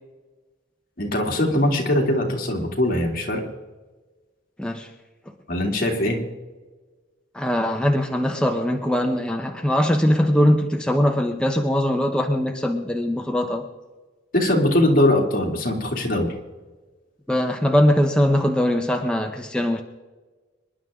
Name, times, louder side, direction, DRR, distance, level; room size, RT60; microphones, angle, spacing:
voice 1, 1.0-3.4 5.5-6.2 14.3-16.3, left 1 dB, 50° left, 2 dB, 2.8 m, -21 dB
voice 2, 4.6-4.9 7.3-13.6 17.3-19.8, left 1 dB, 5° left, 3 dB, 0.9 m, -21 dB
26.5 x 11.0 x 3.7 m, 1.3 s
head